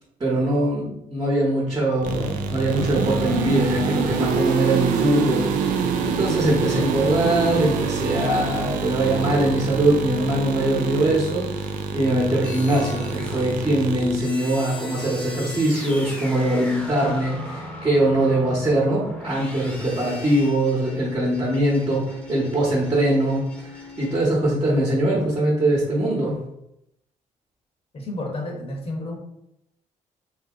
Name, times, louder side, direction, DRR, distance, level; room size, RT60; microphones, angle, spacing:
voice 1, 0.2-5.5 6.0-11.7 11.9-23.4 24.0-26.4, right 1 dB, 30° right, -5 dB, 1.0 m, -22 dB
sound 1, 2.0-14.2, right 5 dB, 85° right, 0.4 m, -26 dB
sound 2, 12.4-24.3, left 1 dB, 5° left, 0.9 m, -38 dB
voice 2, 27.9-29.2, left 1 dB, 45° left, 0 dB, 1.0 m, -31 dB
2.8 x 2.7 x 3.5 m, 0.82 s
cardioid pair, 75°, 13 cm